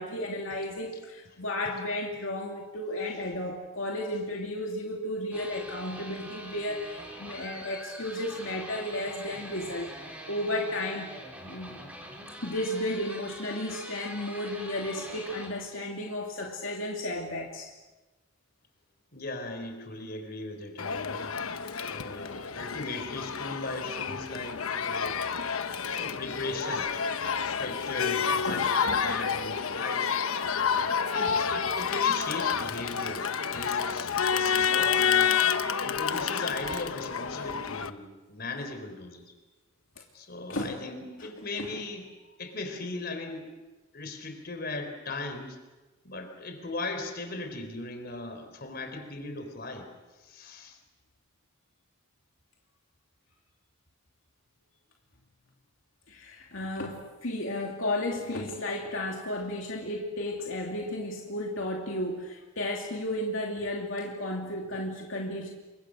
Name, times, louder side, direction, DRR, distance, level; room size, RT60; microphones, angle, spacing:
voice 1, 0.0-9.9 10.3-11.1 11.5-11.8 12.4-17.7 22.3-22.4 24.1-24.2 24.8-25.0 25.4-25.5 28.4-29.4 30.8-31.0 40.0-40.1 40.5-40.8 41.2-41.3 41.5-41.8 56.1-65.5, left 1 dB, 70° left, 0 dB, 2.8 m, -33 dB
sound 1, 5.3-15.5, equal, 5° right, 5.6 m, -44 dB
voice 2, 19.1-25.2 25.8-26.9 27.4-30.1 31.0-35.3 35.8-39.3 40.1-42.1 42.4-43.5 43.9-45.6 46.0-49.9 50.2-50.8, left 2 dB, 45° left, 7 dB, 4.1 m, -38 dB
Crowd, 20.8-37.9, left 7 dB, 85° left, 1.1 m, -29 dB
29.0 x 25.0 x 6.5 m, 1.2 s
head